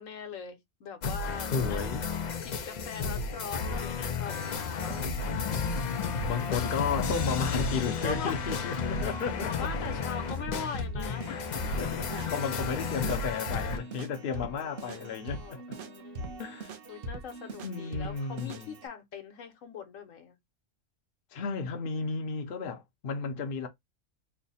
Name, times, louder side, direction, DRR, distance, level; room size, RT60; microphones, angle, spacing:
voice 1, 0.0-1.9 2.4-5.1 8.0-8.4 9.0-9.1 9.4-11.3 11.8-12.2 14.3-16.5 16.9-20.3, left 6 dB, 70° left, 1.2 m, -41 dB
sound 1, 1.0-13.8, left 5 dB, 85° left, 0.3 m, -33 dB
voice 2, 1.5-2.1 5.8-5.9 6.3-9.7 11.3-11.4 11.8-15.6 16.4-16.8 17.6-18.7 21.3-23.7, left 5 dB, 55° left, 0.7 m, -33 dB
Keyboard (musical), 4.6-18.9, right 1 dB, 50° right, 0.9 m, -43 dB
sound 2, 11.7-11.9 12.2-12.3 12.6-12.8 13.1-13.2 13.5-13.7 14.0-14.1 14.4-14.6 14.9-15.0 15.3-15.5 15.8-15.9 16.2-16.4 16.7-16.8 17.1-17.7 18.0-18.2 18.5-18.6, right 8 dB, 65° right, 0.5 m, -45 dB
3.2 x 2.1 x 4.0 m
omnidirectional pair, 1.4 m